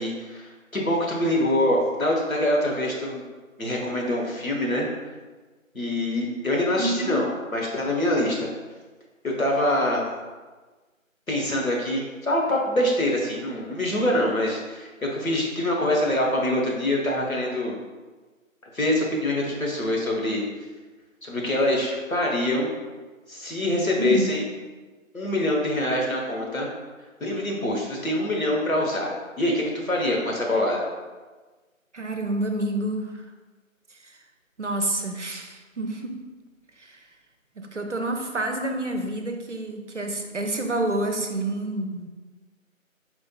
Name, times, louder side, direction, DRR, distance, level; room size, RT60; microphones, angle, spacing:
voice 1, 0.0-3.2 3.6-4.9 5.7-8.5 9.2-10.0 11.3-17.8 18.7-20.4 21.2-22.7 23.3-24.4 25.1-26.7 27.2-30.8, left 1 dB, 80° left, -1 dB, 1.2 m, -25 dB
voice 2, 6.8-7.2 24.0-24.3 31.9-33.3 34.0-34.2 34.6-36.2 36.8-37.0 37.6-42.1, right 2 dB, 60° right, 4 dB, 0.5 m, -28 dB
4.4 x 4.3 x 2.3 m, 1.3 s
figure-of-eight pair, 175°, 41 cm